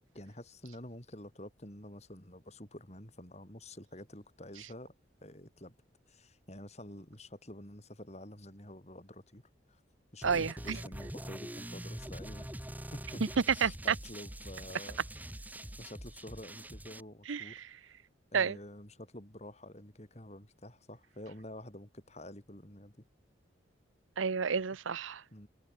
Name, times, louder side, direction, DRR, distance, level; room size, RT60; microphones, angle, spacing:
voice 1, 0.1-4.9 5.2-5.8 6.1-9.4 9.7-9.8 10.1-12.6 12.9-15.0 15.8-17.6 18.3-23.0 25.3-25.5, left 1 dB, 35° left, 4.0 m, -49 dB
sound 1, 10.2-17.0, right 1 dB, 10° right, 2.2 m, -44 dB
voice 2, 10.2-10.8 13.6-13.9 17.3-17.6 18.3-18.6 24.2-25.2, right 6 dB, 85° right, 0.7 m, -31 dB
head